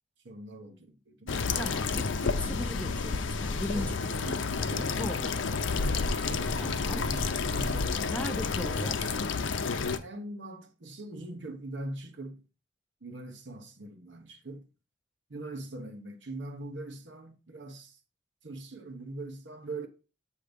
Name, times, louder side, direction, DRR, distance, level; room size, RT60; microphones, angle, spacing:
voice 1, 0.2-1.4 2.0-2.2 2.6-2.8 3.7-3.9 4.2-5.0 5.8-8.1 8.7-8.9 10.0-12.4 13.0-14.7 15.3-18.0 18.4-19.9, right 2 dB, 75° right, 0.9 m, -42 dB
sound 1, 1.3-10.0, left 4 dB, 90° left, 0.6 m, -30 dB
voice 2, 1.6-4.2 4.6-5.4 6.6-7.1 8.1-9.0, left 1 dB, 5° left, 0.4 m, -38 dB
7.9 x 2.8 x 5.1 m
head